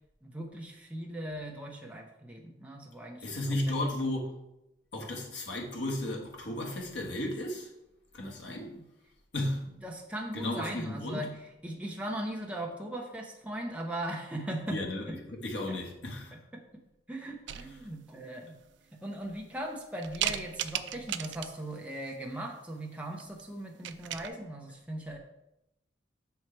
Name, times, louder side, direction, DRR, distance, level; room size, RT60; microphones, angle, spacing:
voice 1, 0.2-3.2 8.6-8.8 9.8-11.4 11.6-15.2 15.7-15.8 16.3-16.8 17.1-18.6 18.9-25.2, right 1 dB, 5° right, 0.7 m, -39 dB
voice 2, 3.2-4.3 4.9-7.7 8.1-8.7 9.3-9.7 10.3-11.2 14.7-16.3, left 1 dB, 70° left, 1.4 m, -34 dB
sound 1, 17.5-18.1 18.7-18.8 19.2-19.7 20.0-21.7 23.2-23.4 23.7-24.3, right 11 dB, 75° right, 0.3 m, -36 dB
6.2 x 4.6 x 4.4 m
head